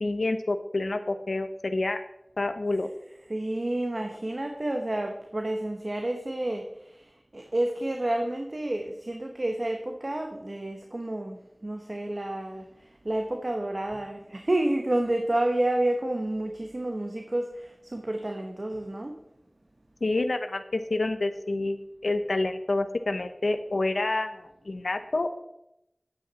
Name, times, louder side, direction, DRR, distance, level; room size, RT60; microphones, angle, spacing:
voice 1, 0.0-2.0 2.4-2.9 20.0-25.3, left 2 dB, 85° left, 8 dB, 0.8 m, -28 dB
voice 2, 3.3-6.7 7.3-11.4 11.6-12.6 13.0-17.5 17.9-19.1, right 1 dB, 50° right, 4 dB, 1.1 m, -29 dB
10.0 x 8.6 x 4.1 m, 0.83 s
wide cardioid pair, 50°, 0 cm